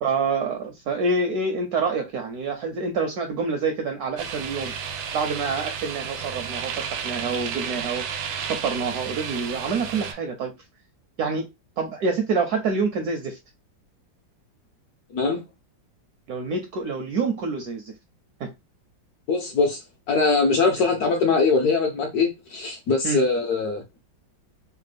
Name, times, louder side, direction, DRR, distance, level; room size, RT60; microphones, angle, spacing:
voice 1, 0.0-4.7 5.1-8.1 8.5-10.5 11.2-11.5 11.8-13.4 16.3-17.9 18.4-18.5 20.8-20.9 23.0-23.2, right 4 dB, 75° right, 0.9 m, -27 dB
sound 1, 4.2-10.1, right 7 dB, 90° right, 1.4 m, -32 dB
voice 2, 19.3-19.8 20.1-23.8, left 4 dB, 70° left, 0.9 m, -22 dB
3.3 x 2.2 x 3.3 m
omnidirectional pair, 2.1 m